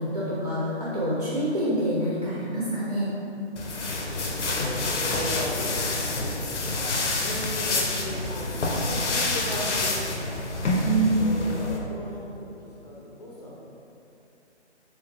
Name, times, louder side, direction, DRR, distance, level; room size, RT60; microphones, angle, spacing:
voice 1, 0.0-3.1 10.8-11.2, right 1 dB, 40° right, -9 dB, 0.6 m, -26 dB
sound 1, 3.6-11.8, left 2 dB, 85° left, 0.7 m, -27 dB
voice 2, 4.1-10.4 11.1-13.5, left 1 dB, 35° left, -6 dB, 0.6 m, -37 dB
3.3 x 3.0 x 3.2 m, 2.8 s
hypercardioid pair, 180°, 35 cm